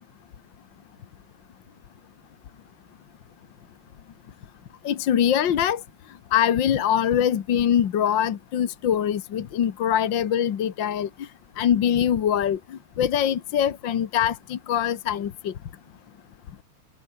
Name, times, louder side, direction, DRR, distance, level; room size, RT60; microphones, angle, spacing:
voice 1, 4.8-5.8 6.3-11.1 11.6-15.5, left 9 dB, 55° left, 1.4 m, -23 dB
omnidirectional pair, 3.6 m